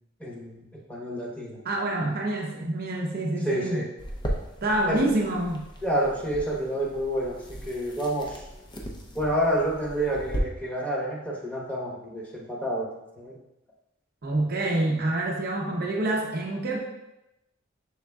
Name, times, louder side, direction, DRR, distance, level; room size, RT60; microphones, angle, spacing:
voice 1, 0.2-1.6 3.4-3.9 4.8-5.1 5.8-8.4 9.1-13.4, right 1 dB, 5° left, -4 dB, 0.9 m, -29 dB
voice 2, 1.6-3.8 4.6-5.6 14.2-16.8, right 1 dB, 50° right, -1 dB, 0.6 m, -27 dB
sound 1, 4.0-10.4, equal, 25° left, 0.6 m, -37 dB
6.3 x 3.7 x 2.3 m, 0.91 s
head